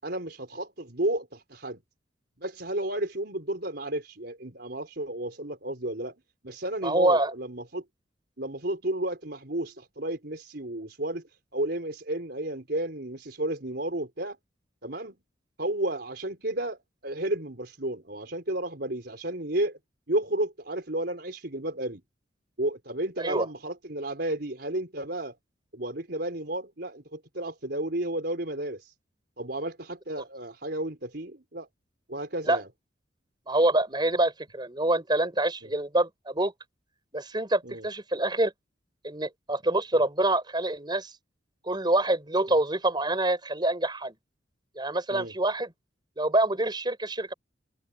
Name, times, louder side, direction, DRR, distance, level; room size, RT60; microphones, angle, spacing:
voice 1, 0.0-1.8 2.4-6.2 6.4-7.8 8.4-11.2 11.5-14.4 14.8-15.1 15.6-19.8 20.1-22.0 22.6-25.4 25.7-28.9 29.4-31.7 32.1-32.7 35.6-35.7 37.6-37.9 45.1-45.3, right 1 dB, 60° right, 4.9 m, -32 dB
voice 2, 6.8-7.3 23.2-23.5 32.4-32.6 33.5-36.5 37.1-38.5 39.0-41.1 41.6-44.1 44.8-45.7 46.2-47.3, right 1 dB, 25° right, 5.3 m, -26 dB
open air
head